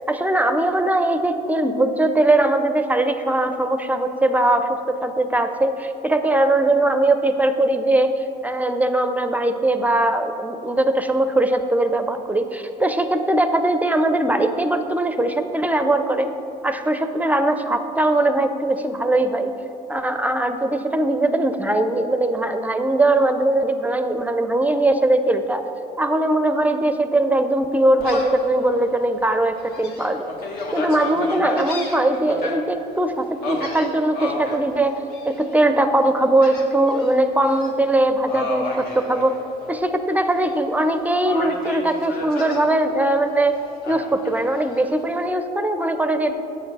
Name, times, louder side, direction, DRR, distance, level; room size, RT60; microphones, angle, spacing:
voice 1, 0.1-8.1 8.4-16.3 16.6-19.5 19.9-25.6 26.0-30.3 30.7-34.9 35.3-39.4 39.7-43.6 43.9-46.3, right 1 dB, 10° right, 8 dB, 0.5 m, -20 dB
Gull seagull, 28.0-28.4 28.9-29.0 29.6-32.5 33.4-34.6 35.1-35.6 36.4-37.1 37.4-37.7 38.2-39.8 40.1-40.9 41.2-42.6 43.8-44.8, left 2 dB, 70° left, 1.6 m, -31 dB
7.2 x 6.9 x 6.0 m, 2.9 s
cardioid pair, 110°, 17 cm